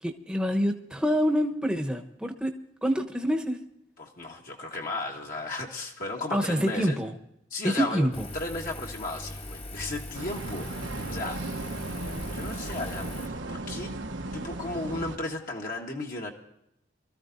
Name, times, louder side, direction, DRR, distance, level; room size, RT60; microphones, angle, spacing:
voice 1, 0.0-2.5 2.8-3.6 6.3-7.1 7.6-8.3, equal, 5° right, 3 dB, 1.0 m, -26 dB
voice 2, 4.0-7.0 7.5-8.1 8.3-11.4 12.3-13.9 14.3-16.3, left 2 dB, 50° left, 0 dB, 1.4 m, -35 dB
Engine, 8.1-13.3, left 1 dB, 30° left, 1.2 m, -40 dB
sound 1, 10.1-15.2, right 2 dB, 85° right, 1.2 m, -36 dB
24.5 x 14.0 x 2.6 m, 0.79 s
head